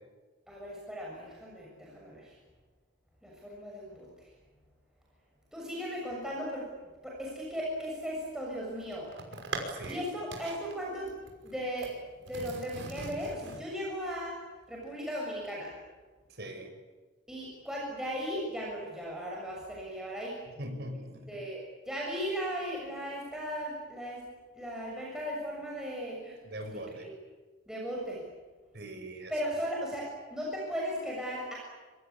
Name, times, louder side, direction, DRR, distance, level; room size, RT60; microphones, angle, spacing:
voice 1, 0.5-2.3 3.2-4.1 5.5-6.6 7.0-9.1 9.9-11.1 11.4-11.9 12.3-14.3 14.7-15.7 17.3-20.3 21.3-21.6 21.9-24.2 24.5-26.4 26.7-27.2 27.7-28.2 29.3-31.5, equal, 5° right, -4 dB, 6.9 m, -37 dB
sound 1, 8.4-10.0 10.3-10.7 11.1-11.9 12.3-13.6, right 2 dB, 75° right, 5.7 m, -41 dB
voice 2, 9.7-10.0 16.4-16.7 20.5-21.4 26.4-27.1 28.7-29.3, right 1 dB, 55° right, 5 dB, 6.0 m, -41 dB
26.5 x 24.5 x 8.7 m, 1.3 s
head